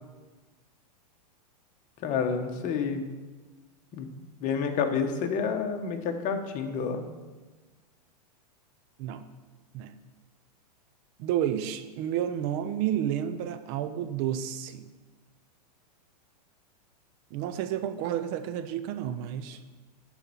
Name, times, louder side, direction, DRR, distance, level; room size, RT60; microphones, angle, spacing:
voice 1, 2.0-3.1 3.9-4.1 4.4-7.1, left 6 dB, 35° left, 5 dB, 1.2 m, -29 dB
voice 2, 11.2-14.9 17.3-19.6, right 10 dB, 45° right, 10 dB, 0.6 m, -31 dB
11.0 x 4.4 x 7.1 m, 1.3 s
hypercardioid pair, 120°, 21 cm